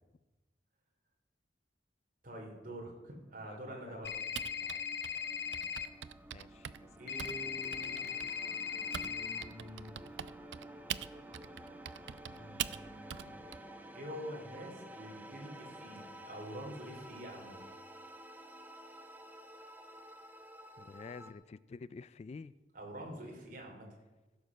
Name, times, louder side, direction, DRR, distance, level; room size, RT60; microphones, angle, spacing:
voice 1, 2.2-4.1 7.0-8.3 9.0-9.9 12.3-13.4 13.9-17.5 22.7-23.9, equal, 50° right, 0 dB, 3.3 m, -46 dB
sound 1, 3.0-21.3, right 1 dB, 10° right, 0.9 m, -52 dB
voice 2, 3.4-4.2 4.6-4.9 6.3-6.7 20.8-22.5, left 4 dB, 35° left, 18 dB, 0.3 m, -49 dB
sound 2, 4.0-5.9 7.1-9.4, left 7 dB, 65° left, 0.9 m, -38 dB
Typing, 4.3-9.1 9.4-13.6, right 10 dB, 80° right, 0.4 m, -42 dB
15.5 x 7.2 x 6.2 m, 1.1 s
head